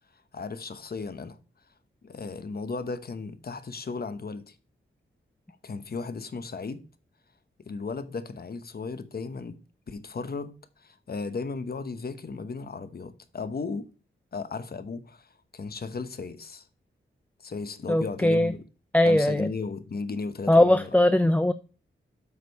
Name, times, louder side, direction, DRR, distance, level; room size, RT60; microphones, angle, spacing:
voice 1, 0.3-1.4 2.0-4.6 5.6-6.8 7.6-9.6 9.9-13.9 14.3-16.7 17.4-18.6 19.0-20.9, left 4 dB, 50° left, 1.0 m, -35 dB
voice 2, 17.9-18.5 18.9-19.5 20.5-21.5, left 1 dB, 5° left, 0.4 m, -20 dB
8.1 x 5.0 x 5.4 m
wide cardioid pair, 110°, 21 cm